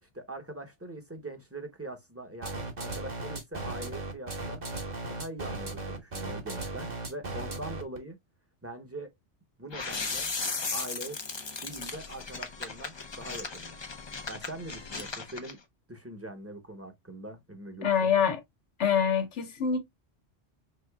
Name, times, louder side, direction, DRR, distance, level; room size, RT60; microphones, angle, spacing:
voice 1, 0.1-4.6 5.1-8.2 8.6-9.1 9.6-10.3 10.7-11.2 11.6-13.8 14.3-15.6 15.9-18.1, right 1 dB, 15° right, 0.9 m, -42 dB
sound 1, 2.4-8.0, right 2 dB, 40° right, 1.2 m, -36 dB
sound 2, 9.7-15.5, left 4 dB, 30° left, 0.5 m, -36 dB
voice 2, 17.8-18.4 18.8-19.8, left 7 dB, 75° left, 1.4 m, -25 dB
5.2 x 3.7 x 2.3 m
omnidirectional pair, 1.2 m